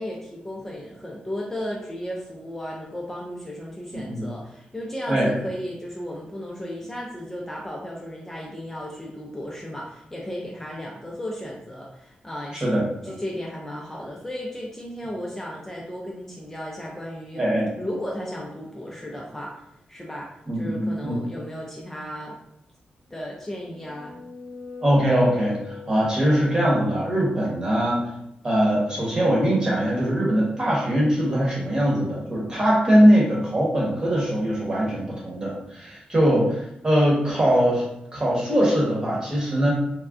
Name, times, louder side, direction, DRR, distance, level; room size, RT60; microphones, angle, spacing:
voice 1, 0.0-17.4 17.8-19.5 19.9-20.3 20.5-22.4 23.1-24.2, equal, 10° left, -3 dB, 0.4 m, -34 dB
voice 2, 3.9-4.3 5.1-5.3 12.5-12.8 17.4-17.7 20.5-21.2 24.8-28.0 28.4-37.8 38.1-39.7, equal, 25° right, -4 dB, 1.0 m, -21 dB
sound 1, 23.4-26.5, left 5 dB, 80° left, 0.5 m, -40 dB
3.4 x 2.2 x 2.4 m, 0.78 s
wide cardioid pair, 115°, 3 cm